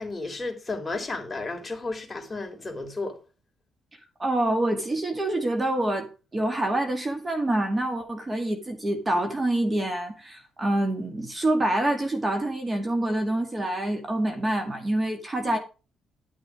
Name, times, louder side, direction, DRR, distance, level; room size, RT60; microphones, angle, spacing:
voice 1, 0.0-3.2, left 3 dB, 20° left, 3.5 m, -33 dB
voice 2, 4.2-15.6, right 1 dB, 25° right, 2.2 m, -26 dB
11.5 x 6.6 x 5.0 m
cardioid pair, 90°, 0 cm